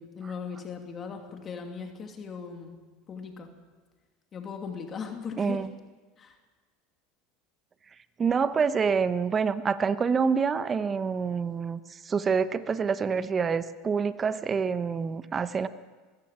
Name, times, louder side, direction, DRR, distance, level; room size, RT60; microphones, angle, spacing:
voice 1, 0.0-2.8 3.1-3.5 4.3-5.7 6.2-6.4, left 6 dB, 35° left, 4 dB, 2.7 m, -38 dB
voice 2, 5.4-5.7 8.2-15.7, right 5 dB, 30° right, 13 dB, 1.1 m, -27 dB
21.5 x 16.0 x 7.5 m, 1.4 s
hypercardioid pair, 95°, 0 cm